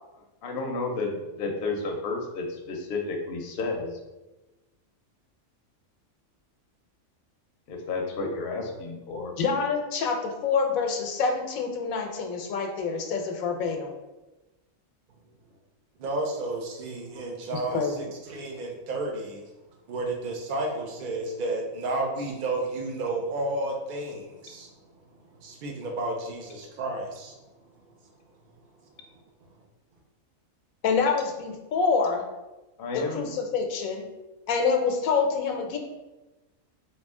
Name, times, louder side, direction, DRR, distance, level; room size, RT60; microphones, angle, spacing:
voice 1, 0.4-4.0 7.7-9.3 32.8-33.3, left 3 dB, 60° left, 1 dB, 0.7 m, -31 dB
voice 2, 9.4-13.9 17.7-18.0 30.8-32.2 32.9-34.0 34.5-35.8, left 5 dB, 85° left, 3 dB, 1.0 m, -26 dB
voice 3, 16.0-19.4 19.9-24.7 25.4-27.3, right 2 dB, 70° right, 1 dB, 0.4 m, -31 dB
3.0 x 2.7 x 3.5 m, 1.1 s
omnidirectional pair, 1.4 m